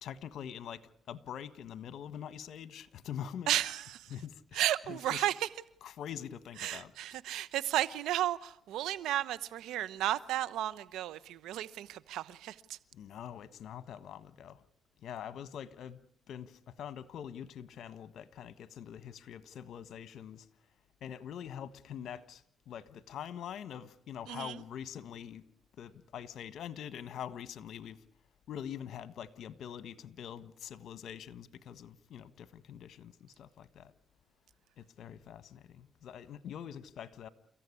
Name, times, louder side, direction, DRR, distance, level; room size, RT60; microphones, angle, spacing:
voice 1, 0.0-3.5 4.1-4.6 4.9-5.2 5.8-7.2 12.9-14.6 15.0-16.0 16.3-20.5 21.0-25.4 25.8-28.0 28.5-33.9 34.8-37.3, left 9 dB, 70° left, 1.4 m, -44 dB
voice 2, 3.5-4.1 4.5-5.5 6.6-12.8 24.3-24.6, right 13 dB, 85° right, 1.0 m, -33 dB
29.5 x 15.0 x 9.9 m
cardioid pair, 90°, 0 cm